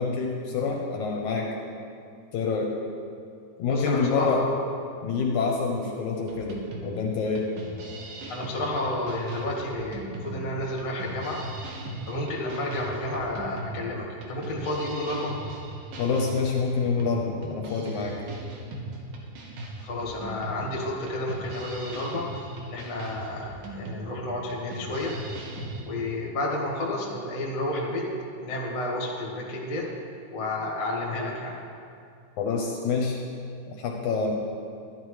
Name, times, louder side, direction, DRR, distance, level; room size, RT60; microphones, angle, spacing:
voice 1, 0.0-1.5 2.3-2.7 3.6-4.4 5.0-7.5 16.0-18.2 32.4-33.2 33.7-34.3, left 4 dB, 75° left, 0 dB, 2.0 m, -27 dB
voice 2, 3.7-4.6 8.3-11.4 12.0-15.3 19.8-25.1 25.8-28.0 28.4-29.9 30.3-31.6, left 1 dB, 35° left, -2 dB, 1.4 m, -31 dB
sound 1, 6.3-25.8, right 1 dB, 80° right, 2.9 m, -38 dB
12.5 x 12.0 x 3.2 m, 2.4 s
omnidirectional pair, 3.8 m